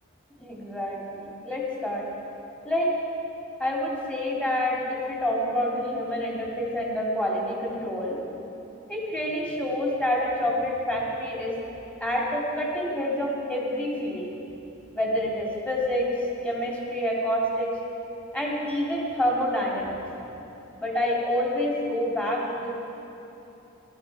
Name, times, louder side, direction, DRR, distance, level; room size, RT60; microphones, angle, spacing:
voice 1, 0.4-2.1 2.6-2.9 3.6-8.2 8.9-11.5 12.0-14.3 14.9-16.1 16.4-17.7 18.3-20.0 20.8-22.8, left 1 dB, 5° left, -4 dB, 2.4 m, -27 dB
16.5 x 12.0 x 4.8 m, 2.9 s
head